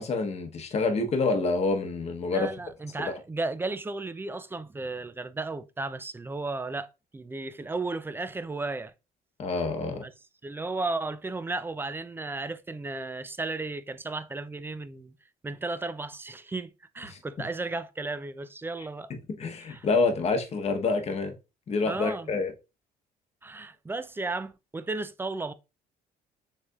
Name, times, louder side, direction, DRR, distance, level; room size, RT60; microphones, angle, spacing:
voice 1, 0.0-2.5 3.0-3.1 9.4-10.0 17.1-17.2 19.4-21.3 21.7-22.5, left 3 dB, 40° left, 0.9 m, -27 dB
voice 2, 2.3-8.9 10.0-10.1 10.4-15.1 15.4-16.7 16.9-19.1 19.7-19.9 21.9-22.4 23.4-25.5, right 3 dB, 15° right, 0.3 m, -34 dB
6.5 x 3.2 x 2.3 m
cardioid pair, 110°, 17 cm